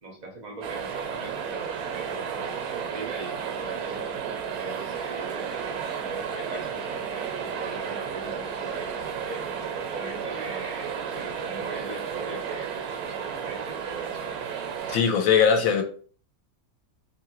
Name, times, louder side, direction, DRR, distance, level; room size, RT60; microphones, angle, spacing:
voice 1, 0.0-4.1 4.5-7.3 7.6-9.5 9.9-14.2, right 3 dB, 45° right, 0.6 m, -40 dB
sound 1, 0.6-15.0, right 7 dB, 80° right, 1.0 m, -33 dB
voice 2, 14.9-15.8, left 7 dB, 70° left, 0.9 m, -20 dB
2.8 x 2.5 x 2.9 m
omnidirectional pair, 1.5 m